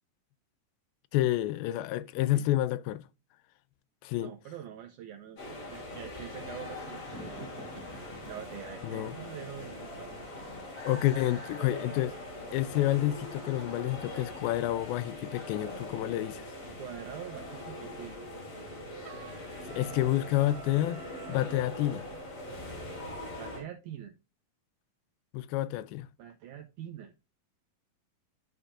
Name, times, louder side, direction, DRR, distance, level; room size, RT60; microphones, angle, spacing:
voice 1, 1.1-3.0 4.0-4.3 8.8-9.2 10.9-12.2 12.5-16.5 19.7-21.0 21.3-22.1 25.3-26.1, left 14 dB, 85° left, 2.4 m, -29 dB
voice 2, 4.2-7.5 8.3-10.1 16.8-18.2 23.4-24.1 26.2-27.1, right 10 dB, 85° right, 1.7 m, -44 dB
sound 1, 5.4-23.6, left 1 dB, 50° left, 4.1 m, -42 dB
sound 2, 7.0-8.7 9.5-11.1 12.0-13.1 13.5-15.0 15.6-17.4, equal, 15° right, 1.9 m, -53 dB
Trumpet, 19.0-21.6, right 8 dB, 70° right, 2.3 m, -50 dB
13.0 x 4.4 x 2.5 m
omnidirectional pair, 4.2 m